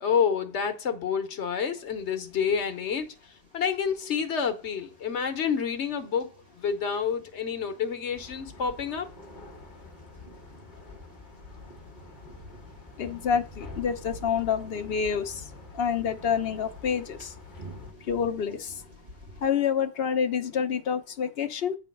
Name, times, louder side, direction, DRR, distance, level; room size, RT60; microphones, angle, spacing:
voice 1, 0.0-9.1, left 7 dB, 75° left, 1.2 m, -29 dB
sound 1, 1.8-19.5, equal, 60° right, 2.7 m, -50 dB
sound 2, 8.2-17.9, left 3 dB, 45° left, 1.4 m, -48 dB
voice 2, 13.0-15.4 15.8-17.3 18.1-18.7 19.4-21.8, left 7 dB, 60° left, 0.9 m, -27 dB
8.3 x 4.0 x 5.2 m
omnidirectional pair, 1.2 m